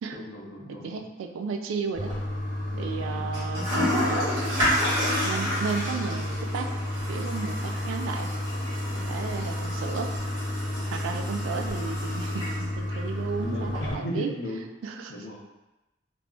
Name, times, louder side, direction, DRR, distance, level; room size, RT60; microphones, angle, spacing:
voice 1, 0.1-1.0 2.7-3.8 8.9-9.1 10.8-10.9 13.4-14.7 15.1-15.4, equal, 65° left, -3 dB, 0.6 m, -37 dB
voice 2, 0.7-2.1 2.8-4.2 5.2-6.7 7.1-8.3 9.1-10.1 10.9-14.3 14.8-15.1, right 5 dB, 85° right, 6 dB, 0.3 m, -34 dB
Toilet flush, 1.9-13.9, left 1 dB, 20° right, 1.0 m, -29 dB
2.3 x 2.0 x 3.6 m, 1.0 s
head